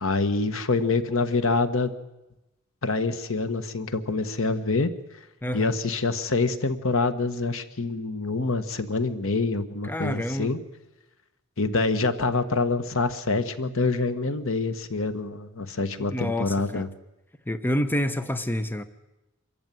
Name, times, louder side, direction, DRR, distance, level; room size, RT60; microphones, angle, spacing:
voice 1, 0.0-1.9 2.8-4.9 5.5-10.6 11.6-16.9, left 3 dB, 70° left, 10 dB, 1.4 m, -26 dB
voice 2, 5.4-5.8 9.8-10.5 16.0-16.9 17.5-18.8, left 1 dB, 10° left, 10 dB, 0.8 m, -28 dB
25.0 x 14.0 x 9.2 m, 0.98 s
head